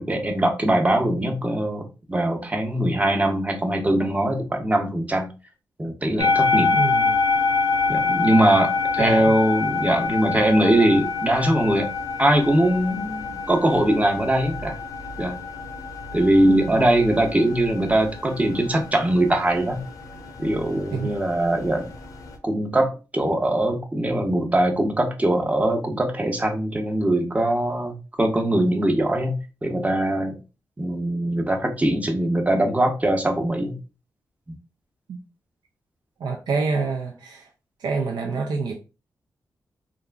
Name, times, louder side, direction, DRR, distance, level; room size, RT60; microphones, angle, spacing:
voice 1, 0.0-1.8 2.1-5.3 5.8-6.7 7.9-11.9 12.2-14.8 15.2-15.4 16.1-19.8 20.4-21.9 22.4-30.4 30.8-33.8, right 1 dB, 20° right, 0.7 m, -21 dB
sound 1, 6.2-22.4, left 4 dB, 55° left, 0.6 m, -27 dB
voice 2, 6.7-7.2 9.0-9.4 16.5-16.8 20.9-21.2 35.1-35.2 36.2-37.5 37.8-38.8, right 4 dB, 75° right, 0.4 m, -27 dB
2.9 x 2.5 x 2.3 m
cardioid pair, 55°, 7 cm